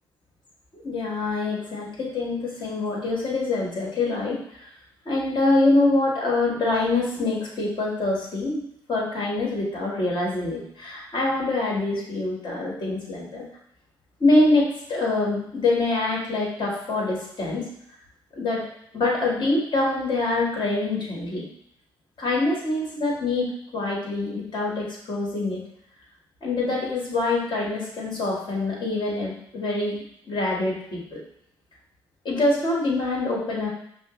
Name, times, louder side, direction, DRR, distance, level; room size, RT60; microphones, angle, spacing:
voice 1, 0.7-4.7 5.0-8.6 8.9-13.5 14.2-17.6 18.3-18.6 18.9-21.5 22.2-25.6 26.4-31.2 32.2-33.7, left 2 dB, 50° left, -3 dB, 1.6 m, -25 dB
5.4 x 2.0 x 3.1 m, 0.71 s
supercardioid pair, 50°, 10 cm